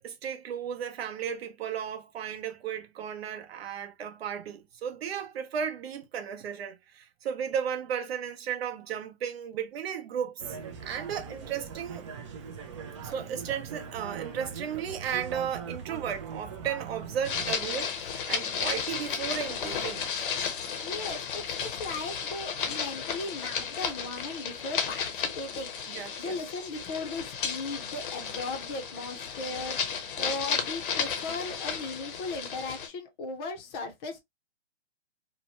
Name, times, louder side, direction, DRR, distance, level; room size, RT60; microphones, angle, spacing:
voice 1, 0.0-12.0 13.0-20.1 25.9-26.5, right 8 dB, 60° right, 0.8 m, -35 dB
sound 1, 10.4-17.5, right 6 dB, 25° right, 0.4 m, -41 dB
sound 2, 17.2-32.9, left 7 dB, 50° left, 0.7 m, -33 dB
voice 2, 20.8-21.4 21.8-25.7 26.2-29.8 30.2-34.2, left 3 dB, 20° left, 0.6 m, -37 dB
2.8 x 2.2 x 2.9 m
hypercardioid pair, 145°, 35 cm